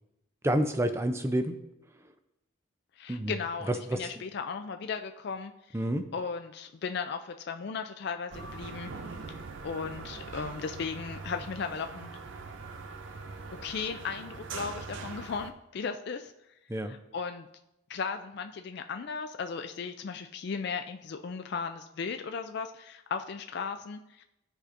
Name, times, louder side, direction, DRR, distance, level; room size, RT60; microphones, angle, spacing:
voice 1, 0.4-1.6 3.1-3.3 3.7-4.0 5.7-6.0 16.7-16.9, right 1 dB, 10° right, 7 dB, 0.4 m, -28 dB
voice 2, 3.0-5.8 6.1-8.9 9.3-9.4 9.6-12.1 13.6-16.3 16.9-17.5 17.9-24.2, left 5 dB, 50° left, 7 dB, 0.3 m, -36 dB
sound 1, 8.3-15.5, right 4 dB, 60° right, 0.5 m, -42 dB
13.0 x 4.9 x 2.5 m, 0.88 s
head